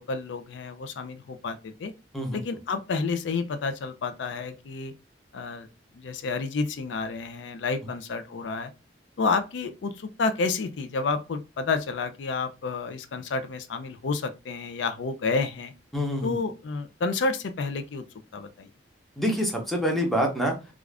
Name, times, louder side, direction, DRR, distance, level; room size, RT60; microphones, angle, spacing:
voice 1, 0.0-1.9 2.3-4.9 5.3-5.7 5.9-8.7 9.2-15.7 16.2-18.0 18.3-18.7, left 4 dB, 85° left, 0.4 m, -30 dB
voice 2, 15.9-16.4 19.2-20.5, equal, ahead, 0.7 m, -26 dB
2.4 x 2.4 x 3.3 m
head